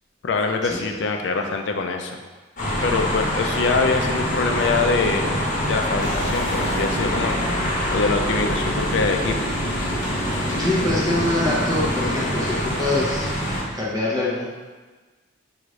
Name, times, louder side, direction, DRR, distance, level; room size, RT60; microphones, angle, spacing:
voice 1, 0.2-2.2 2.8-5.3 5.6-7.4 7.9-9.5, left 4 dB, 65° left, 5 dB, 0.4 m, -24 dB
sound 1, 2.6-13.6, equal, 45° left, 1.0 m, -25 dB
sound 2, 4.8-12.5, left 1 dB, 90° right, 0.9 m, -35 dB
sound 3, 6.0-12.2, right 1 dB, 60° right, 1.0 m, -33 dB
voice 2, 10.5-13.3 13.7-14.5, left 1 dB, 20° right, -7 dB, 0.7 m, -24 dB
4.9 x 2.5 x 3.1 m, 1.3 s
head